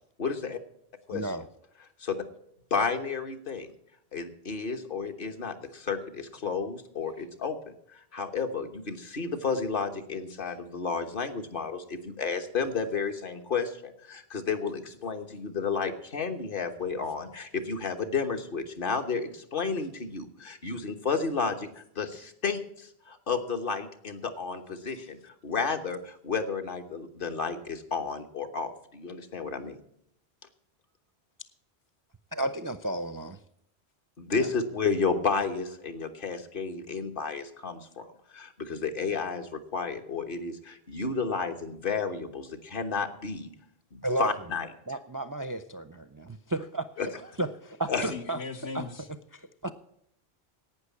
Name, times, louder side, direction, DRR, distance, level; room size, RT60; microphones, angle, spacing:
voice 1, 0.2-0.6 1.1-1.3 2.0-2.2 2.7-3.7 4.1-7.6 7.9-29.8 34.2-38.0 38.3-43.5 43.9-44.7 47.0-47.1 47.9-48.1, left 5 dB, 55° left, 6 dB, 1.4 m, -32 dB
voice 2, 1.1-1.5 32.3-33.4 34.3-34.5 44.0-44.3 44.9-48.4 48.7-48.9 49.3-49.7, right 2 dB, 30° right, 12 dB, 0.4 m, -33 dB
voice 3, 47.9-49.1, left 5 dB, 85° left, 6 dB, 1.6 m, -39 dB
11.5 x 9.0 x 8.4 m, 0.73 s
omnidirectional pair, 1.1 m